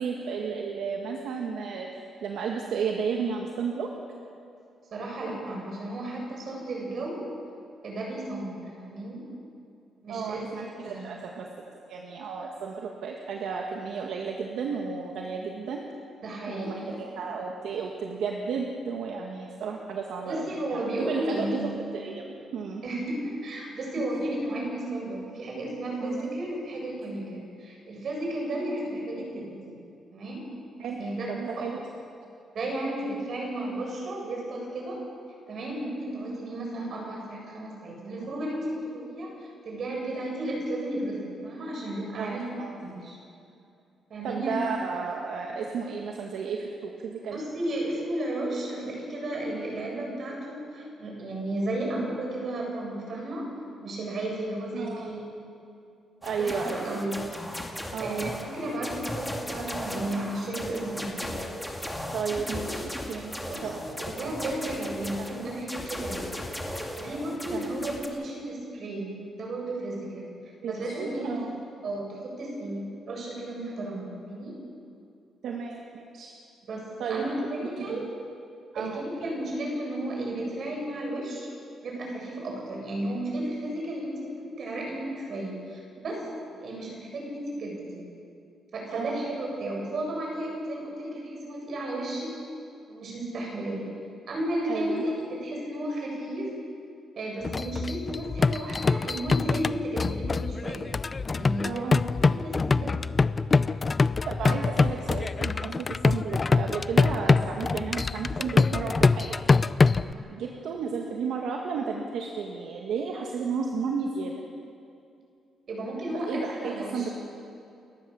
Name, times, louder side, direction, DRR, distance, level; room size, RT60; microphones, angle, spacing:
voice 1, 0.0-3.9 10.1-15.8 16.5-21.6 21.9-22.2 22.5-22.8 26.0-26.3 30.8-31.0 31.3-31.8 42.1-42.8 44.2-47.4 54.7-55.1 56.2-57.0 57.9-58.3 62.1-63.3 63.6-63.8 64.1-64.3 64.8-64.9 65.2-65.4 67.5-67.9 70.6-71.6 75.4-76.3 77.0-77.3 77.6-78.1 78.7-79.0 88.9-89.3 94.7-95.0 101.6-102.0 104.3-109.4 110.3-114.3 116.1-117.1, right 5 dB, 80° right, 1 dB, 1.9 m, -33 dB
voice 2, 4.9-7.2 7.8-9.3 10.0-11.1 16.2-17.0 20.2-21.6 22.8-29.8 30.1-30.4 31.0-31.7 32.5-35.0 35.5-43.2 44.1-44.5 47.3-53.5 53.8-55.2 56.4-57.7 58.0-61.3 63.4-66.4 66.9-70.3 70.6-71.4 71.8-74.6 76.7-78.0 78.7-81.5 81.8-86.2 86.6-88.1 88.7-92.4 92.9-93.9 94.3-96.6 97.2-100.9 101.4-101.9 102.3-103.1 104.4-104.5 110.0-110.3 115.7-117.1, right 1 dB, 55° right, -1 dB, 7.7 m, -33 dB
sound 1, 56.2-68.1, left 1 dB, 5° left, 2.5 m, -37 dB
sound 2, 97.4-110.1, left 4 dB, 30° left, 0.5 m, -24 dB
30.0 x 14.0 x 7.2 m, 2.5 s
cardioid pair, 125°, 0 cm